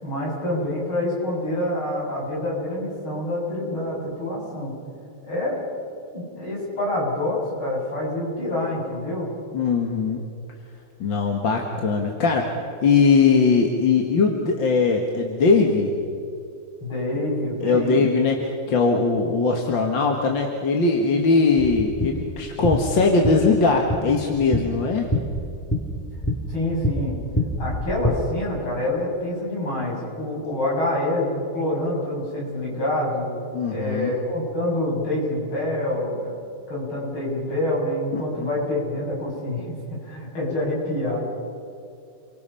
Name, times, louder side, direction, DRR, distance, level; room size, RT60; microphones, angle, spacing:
voice 1, 0.0-4.8 5.2-5.6 6.1-9.3 16.8-18.1 26.5-27.1 27.6-33.3 33.7-36.4 36.7-39.8 40.0-41.2, left 1 dB, 85° left, -4 dB, 8.3 m, -26 dB
voice 2, 9.5-10.2 11.0-12.5 12.8-15.9 17.6-25.1 33.5-34.1 38.1-38.5, left 4 dB, 65° left, 1 dB, 2.5 m, -20 dB
sound 1, 21.6-28.1, left 1 dB, 10° left, 2.7 m, -27 dB
29.5 x 23.0 x 5.8 m, 2.4 s
omnidirectional pair, 2.2 m